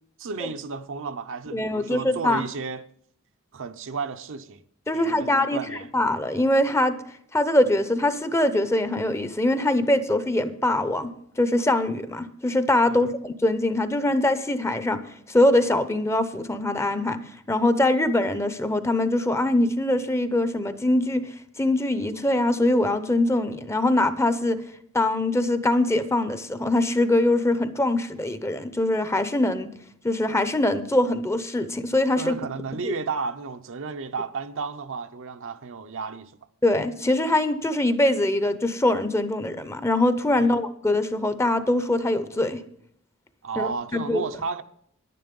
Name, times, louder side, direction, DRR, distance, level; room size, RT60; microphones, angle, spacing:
voice 1, 0.2-2.8 3.5-4.6 4.9-5.9 12.9-13.1 32.2-36.3 40.4-40.6 43.4-44.6, right 4 dB, 65° right, 0.7 m, -33 dB
voice 2, 1.5-2.4 4.9-7.0 7.3-15.0 15.3-17.2 17.5-21.3 21.6-24.6 24.9-29.7 30.0-32.3 32.8-32.9 36.6-42.6 43.6-44.2, left 1 dB, 15° left, 0.7 m, -23 dB
11.0 x 10.5 x 5.3 m
head